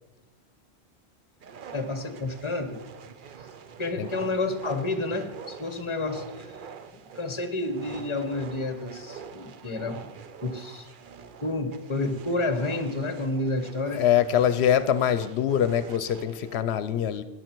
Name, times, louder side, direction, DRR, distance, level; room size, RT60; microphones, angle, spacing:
sound 1, 1.4-16.6, right 6 dB, 55° right, 0.7 m, -45 dB
voice 1, 1.7-2.8 3.8-6.6 7.1-10.1 10.4-10.9 11.4-14.0, left 2 dB, 30° left, 9 dB, 1.1 m, -30 dB
voice 2, 13.9-17.2, left 9 dB, 80° left, 13 dB, 0.8 m, -24 dB
14.0 x 10.0 x 4.5 m, 1.2 s
omnidirectional pair, 1.1 m